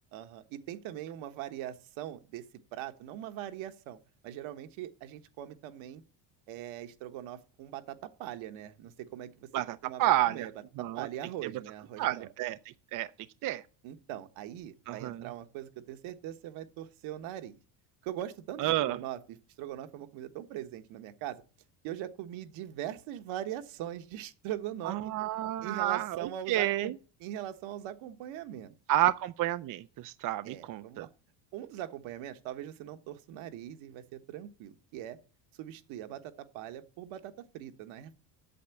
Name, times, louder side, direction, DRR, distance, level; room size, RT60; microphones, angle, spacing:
voice 1, 0.1-2.4 2.7-4.0 4.2-6.0 6.5-9.5 9.8-10.5 10.8-12.3 13.8-17.6 18.0-21.4 21.8-25.1 25.6-26.9 27.2-28.7 30.4-31.1 31.5-35.2 35.6-38.2, right 12 dB, 65° right, 1.4 m, -41 dB
voice 2, 9.5-10.5 10.8-11.1 12.0-12.6 12.9-13.1 13.4-13.6 14.9-15.3 18.6-19.0 24.8-26.9 28.9-31.1, right 14 dB, 45° right, 0.5 m, -30 dB
8.5 x 6.8 x 8.2 m
cardioid pair, 120°, 49 cm